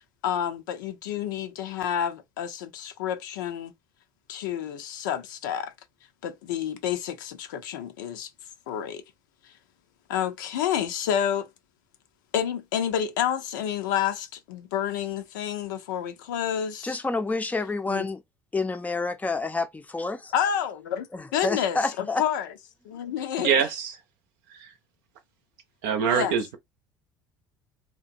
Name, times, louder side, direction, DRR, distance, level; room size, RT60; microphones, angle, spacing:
voice 1, 0.2-3.7 4.3-5.7 6.2-8.3 8.7-9.0 10.1-11.5 12.3-17.0 17.9-18.1 20.3-21.1 21.3-22.5 22.8-23.6 26.0-26.3, left 9 dB, 75° left, 0.5 m, -29 dB
voice 2, 16.8-18.2 18.5-20.3 21.1-22.2 23.0-23.1, left 3 dB, 15° left, 0.5 m, -29 dB
voice 3, 23.4-23.9 24.5-24.7 25.8-26.6, right 7 dB, 65° right, 0.7 m, -24 dB
2.8 x 2.1 x 2.5 m
hypercardioid pair, 65°, 10 cm